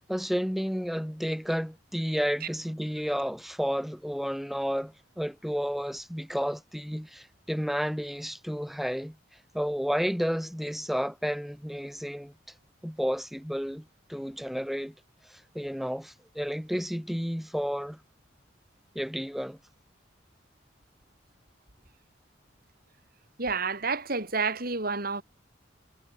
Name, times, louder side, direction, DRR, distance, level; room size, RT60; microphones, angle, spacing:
voice 1, 0.1-9.2 9.5-12.3 12.8-13.8 14.1-14.9 15.3-18.0 19.0-19.6, equal, ahead, 2.1 m, -31 dB
voice 2, 23.4-25.2, right 4 dB, 50° right, 4.7 m, -29 dB
head